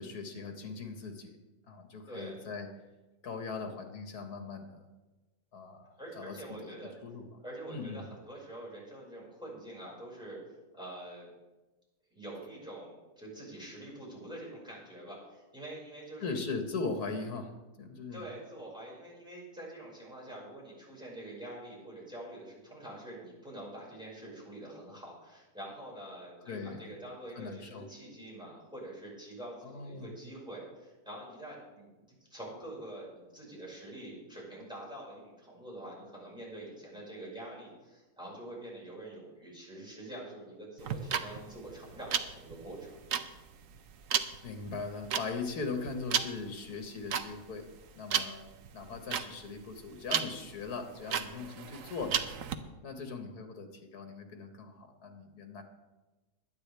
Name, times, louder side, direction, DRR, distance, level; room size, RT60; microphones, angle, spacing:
voice 1, 0.0-1.4 1.7-2.7 3.2-4.8 5.5-7.3 7.7-8.0 16.2-17.5 17.8-18.2 26.5-26.8 27.3-27.9 29.6-30.1 44.4-47.7 48.0-52.2 52.8-55.6, left 4 dB, 75° left, 5 dB, 2.0 m, -40 dB
voice 2, 2.1-2.4 6.0-6.9 7.4-10.4 10.7-11.3 12.1-16.4 18.1-31.9 32.3-43.0, right 1 dB, 5° right, -5 dB, 5.6 m, -46 dB
sound 1, 40.8-52.6, right 8 dB, 65° right, 1.1 m, -34 dB
21.5 x 9.6 x 3.4 m, 1.1 s
omnidirectional pair, 1.6 m